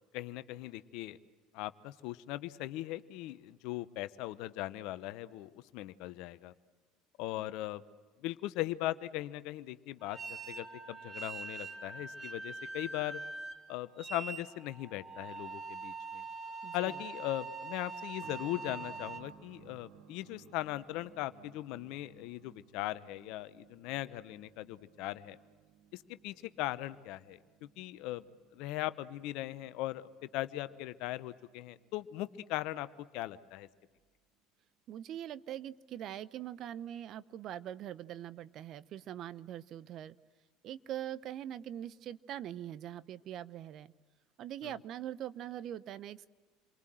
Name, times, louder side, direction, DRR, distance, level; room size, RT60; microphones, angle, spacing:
voice 1, 0.1-1.2 1.5-6.5 7.2-7.8 8.2-13.2 13.7-16.2 16.7-25.4 25.9-27.4 27.8-28.3 28.5-30.1 30.3-33.7 44.6-44.7, left 16 dB, 65° left, 14 dB, 0.9 m, -39 dB
sound 1, 10.0-19.2, right 3 dB, 30° right, 2.4 m, -43 dB
voice 2, 16.6-17.0 34.9-40.2 40.6-43.9 44.4-46.3, right 11 dB, 50° right, 17 dB, 0.8 m, -42 dB
sound 2, 18.2-32.6 32.9-33.0 34.0-34.1, right 9 dB, 70° right, 2.0 m, -61 dB
28.5 x 23.5 x 7.8 m, 1.4 s
hypercardioid pair, 70°, 0 cm